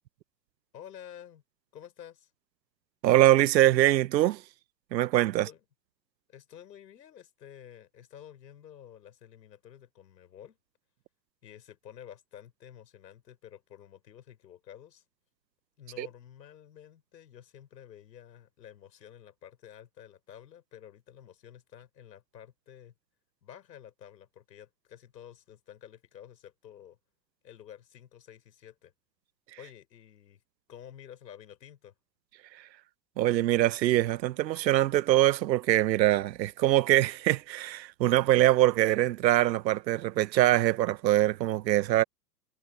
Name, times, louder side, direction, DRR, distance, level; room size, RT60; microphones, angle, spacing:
voice 1, 0.7-1.4 1.7-2.3 5.4-5.6 6.3-10.6 11.4-15.0 15.8-22.9 23.4-27.0 27.4-28.9 29.6-30.4 30.7-31.9, left 10 dB, 90° left, 6.4 m, -50 dB
voice 2, 3.0-4.4 4.9-5.5 16.0-16.1 33.2-42.0, right 14 dB, 90° right, 0.7 m, -23 dB
hypercardioid pair, 130°, 50 cm